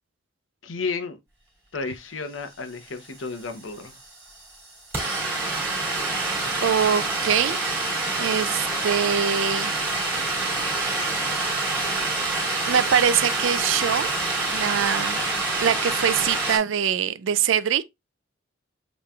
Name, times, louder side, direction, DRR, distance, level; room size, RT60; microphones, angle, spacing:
voice 1, 0.6-1.2 1.7-4.0, left 4 dB, 75° left, 0.8 m, -32 dB
sound 1, 2.9-3.0 3.1-16.6, right 3 dB, 10° right, 2.2 m, -27 dB
voice 2, 6.6-7.6 8.2-9.8 12.7-14.1 14.5-15.3 15.6-17.8, right 8 dB, 75° right, 0.4 m, -23 dB
6.8 x 3.1 x 2.3 m
head